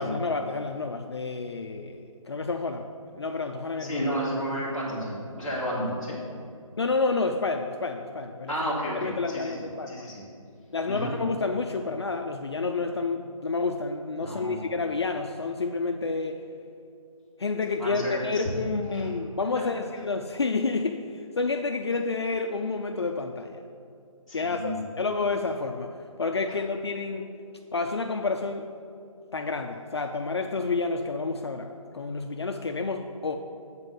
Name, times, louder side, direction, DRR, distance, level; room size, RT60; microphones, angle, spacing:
voice 1, 0.0-2.9 3.1-4.0 6.8-8.5 9.0-10.1 10.7-16.4 17.4-23.6 24.3-27.3 27.7-28.7 29.3-33.4, left 3 dB, 50° left, 4 dB, 0.4 m, -29 dB
voice 2, 3.8-6.2 8.5-10.2 10.9-11.1 14.2-14.6 17.8-18.5 18.9-19.1 24.3-24.8, equal, ahead, -14 dB, 1.5 m, -32 dB
8.3 x 4.4 x 6.8 m, 2.5 s
hypercardioid pair, 175°, 18 cm